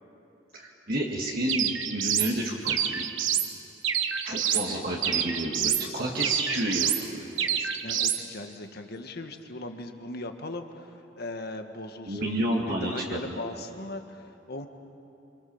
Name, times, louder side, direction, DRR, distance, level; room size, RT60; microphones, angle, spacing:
voice 1, 0.5-3.1 4.2-7.3 12.1-13.4, right 1 dB, 50° right, -2 dB, 2.2 m, -30 dB
sound 1, 1.5-2.3 2.7-3.5 3.8-4.7 5.0-5.9 6.2-7.0 7.4-8.2, right 9 dB, 90° right, 1.3 m, -27 dB
voice 2, 4.5-4.8 5.8-6.3 7.3-12.4 12.7-14.7, left 2 dB, 55° left, 5 dB, 1.7 m, -39 dB
28.0 x 27.0 x 7.2 m, 2.8 s
head